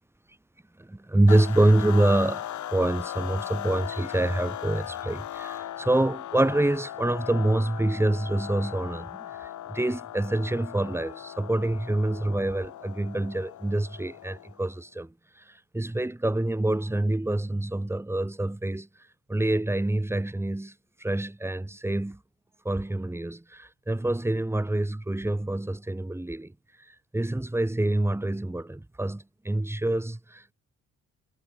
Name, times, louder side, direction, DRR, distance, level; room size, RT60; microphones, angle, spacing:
voice 1, 0.8-2.4 2.7-15.1 15.7-18.9 19.3-20.7 21.0-22.2 22.6-26.5 27.1-30.5, right 1 dB, 10° right, 1.6 m, -26 dB
sound 1, 1.3-14.7, left 12 dB, 70° left, 2.8 m, -38 dB
cardioid pair, 90°, 30 cm